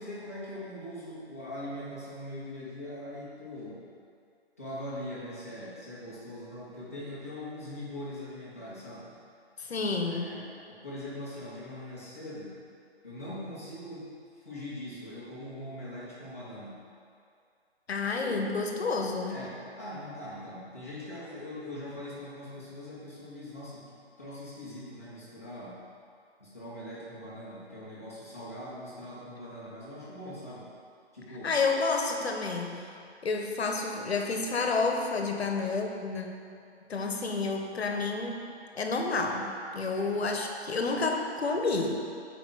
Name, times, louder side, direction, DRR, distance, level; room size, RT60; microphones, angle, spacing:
voice 1, 0.0-3.9 4.6-9.1 10.1-12.6 13.0-16.8 19.3-25.8 26.4-30.7 31.1-31.5 39.9-40.2, left 1 dB, 15° left, -10 dB, 0.7 m, -42 dB
voice 2, 9.6-10.4 17.9-19.4 31.4-32.8 33.2-36.3 36.8-42.0, left 3 dB, 70° left, 3 dB, 0.9 m, -30 dB
6.3 x 4.8 x 4.7 m, 2.4 s
hypercardioid pair, 180°, 33 cm